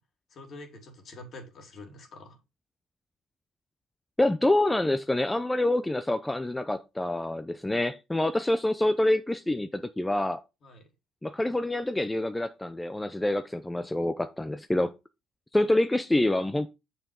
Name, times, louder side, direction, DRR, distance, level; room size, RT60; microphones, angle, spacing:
voice 1, 0.3-2.4 10.6-10.9, left 2 dB, 55° left, 3.0 m, -46 dB
voice 2, 4.2-10.4 11.2-14.9 15.5-16.7, left 1 dB, 10° left, 0.7 m, -26 dB
6.9 x 5.8 x 4.9 m
hypercardioid pair, 65°, 0 cm